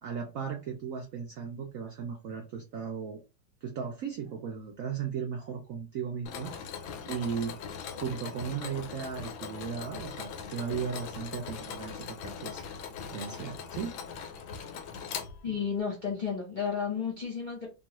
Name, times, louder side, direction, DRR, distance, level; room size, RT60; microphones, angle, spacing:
voice 1, 0.0-3.2 3.6-7.6 7.9-12.6 13.1-14.0 14.8-14.9 15.5-15.6, right 7 dB, 75° right, 0.7 m, -36 dB
Mechanisms, 6.3-15.8, left 6 dB, 90° left, 1.4 m, -41 dB
voice 2, 15.4-17.7, left 6 dB, 40° left, 0.7 m, -32 dB
3.0 x 2.4 x 2.9 m
omnidirectional pair, 2.1 m